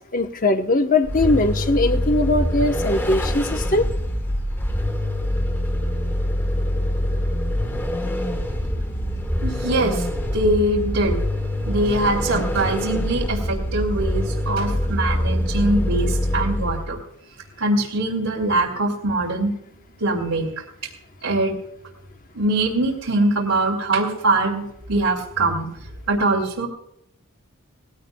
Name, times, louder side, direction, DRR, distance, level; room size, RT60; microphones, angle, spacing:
voice 1, 0.1-3.9, left 2 dB, 40° left, 7 dB, 1.0 m, -20 dB
Vehicle, 1.0-17.0, left 1 dB, 10° left, 1.2 m, -24 dB
voice 2, 9.4-10.0 10.3-11.2 11.6-17.0 17.6-19.5 20.0-20.5 21.2-21.5 22.3-25.7 26.1-26.7, right 2 dB, 85° right, -4 dB, 2.8 m, -22 dB
19.5 x 16.0 x 2.3 m, 0.75 s
head